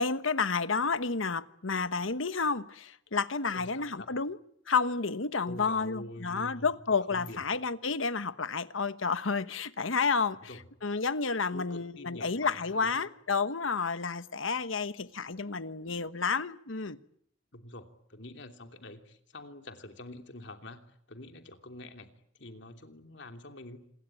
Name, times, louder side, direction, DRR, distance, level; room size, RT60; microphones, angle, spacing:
voice 1, 0.0-4.4 4.7-10.5 10.8-17.0, left 4 dB, 85° left, 1.2 m, -30 dB
voice 2, 3.5-4.2 5.4-6.7 7.1-7.4 10.5-10.6 11.5-13.1 17.5-20.8 21.1-22.1 22.4-23.8, left 1 dB, 60° left, 3.0 m, -46 dB
27.0 x 22.0 x 9.0 m
head